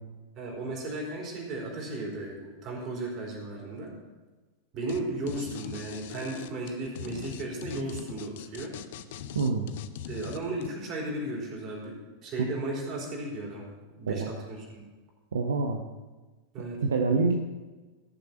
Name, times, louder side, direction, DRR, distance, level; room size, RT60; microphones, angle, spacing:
voice 1, 0.3-4.0 4.7-8.8 10.1-13.7 14.0-14.9 16.5-16.8, right 2 dB, 35° right, -2 dB, 4.5 m, -35 dB
sound 1, 4.9-5.0 5.3-10.7, left 9 dB, 55° left, 0.7 m, -40 dB
voice 2, 9.3-9.7 14.1-14.3 15.3-15.8 16.6-17.4, right 4 dB, 65° right, 4 dB, 0.9 m, -26 dB
15.5 x 6.9 x 6.0 m, 1.2 s
figure-of-eight pair, 90°, 0 cm